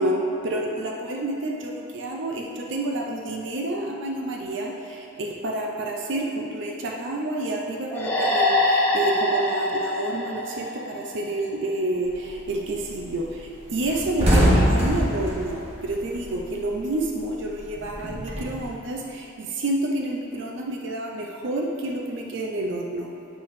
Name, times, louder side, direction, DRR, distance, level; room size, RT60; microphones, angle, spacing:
voice 1, 0.0-23.1, right 1 dB, 60° right, 0 dB, 0.5 m, -29 dB
sound 1, 7.9-11.4, left 1 dB, 10° left, 1.0 m, -24 dB
sound 2, 12.1-12.4 12.8-12.9 13.2-13.4 13.7-16.7 17.0-18.6, equal, 30° right, 1.5 m, -22 dB
8.2 x 5.7 x 3.2 m, 2.8 s
head